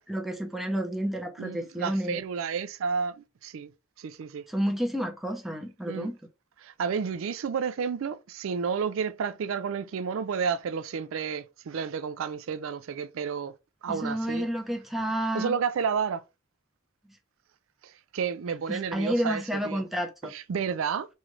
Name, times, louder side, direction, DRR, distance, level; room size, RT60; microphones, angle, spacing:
voice 1, 0.1-2.2 4.5-6.2 13.9-15.6 18.7-20.3, equal, ahead, 0.7 m, -30 dB
voice 2, 1.4-3.7 4.0-4.4 5.9-6.1 6.6-13.5 13.8-14.5 15.3-16.2 17.8-19.8 20.2-21.1, right 6 dB, 80° right, 0.4 m, -31 dB
3.2 x 3.2 x 3.7 m
head